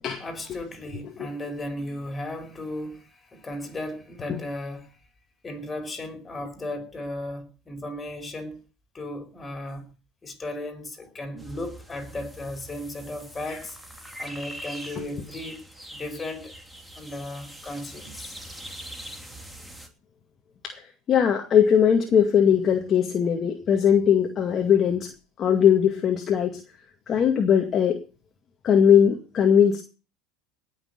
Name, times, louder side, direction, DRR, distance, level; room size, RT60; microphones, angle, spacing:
voice 1, 0.2-5.0 5.4-8.6 8.9-9.8 10.2-13.8 14.2-15.6 15.9-16.5 16.9-18.4, left 1 dB, 20° left, 4.9 m, -35 dB
sound 1, 11.4-19.9, right 1 dB, ahead, 3.0 m, -42 dB
voice 2, 20.6-25.1 25.4-26.6 27.1-28.0 28.6-29.8, left 8 dB, 35° left, 2.1 m, -20 dB
19.0 x 6.7 x 6.7 m
hypercardioid pair, 90°, 0 cm